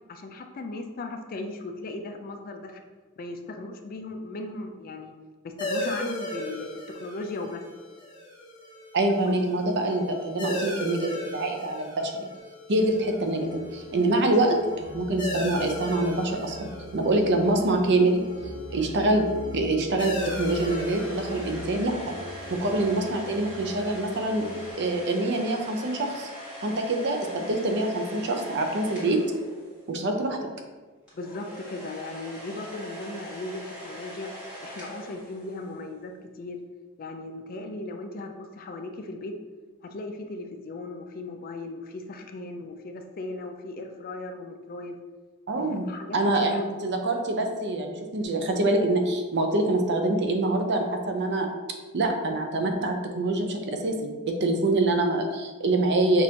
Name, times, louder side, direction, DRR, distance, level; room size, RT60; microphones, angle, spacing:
voice 1, 0.1-2.8 3.2-5.1 5.4-7.6 9.2-9.4 31.1-34.3 34.6-36.6 37.0-39.3 39.8-45.0 45.5-46.7, left 2 dB, 45° left, 5 dB, 0.4 m, -37 dB
sound 1, 5.6-24.7, left 1 dB, 20° left, 0.9 m, -38 dB
voice 2, 8.9-12.3 12.7-18.2 18.7-19.3 19.5-22.1 22.5-24.5 24.8-26.3 26.6-29.2 29.9-30.4 45.5-45.9 46.1-51.5 51.9-56.2, right 2 dB, 55° right, 4 dB, 0.5 m, -25 dB
sound 2, 12.7-24.7, equal, 85° left, 0.7 m, -41 dB
sound 3, 19.9-30.0 31.1-35.8, right 1 dB, 5° right, 1.4 m, -42 dB
6.1 x 2.5 x 2.8 m, 1.3 s
head